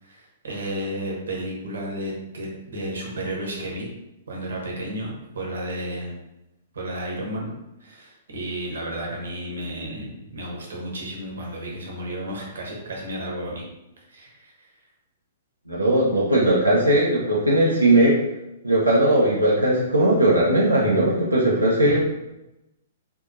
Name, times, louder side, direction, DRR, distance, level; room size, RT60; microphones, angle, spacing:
voice 1, 0.0-3.9 4.3-6.2 6.7-7.5 7.8-13.6 14.1-14.7 21.8-22.0, right 1 dB, 65° right, -2 dB, 1.0 m, -32 dB
voice 2, 15.7-18.2 18.6-22.1, right 1 dB, 90° right, -7 dB, 0.7 m, -19 dB
3.7 x 2.6 x 2.6 m, 0.94 s
figure-of-eight pair, 110°, 0 cm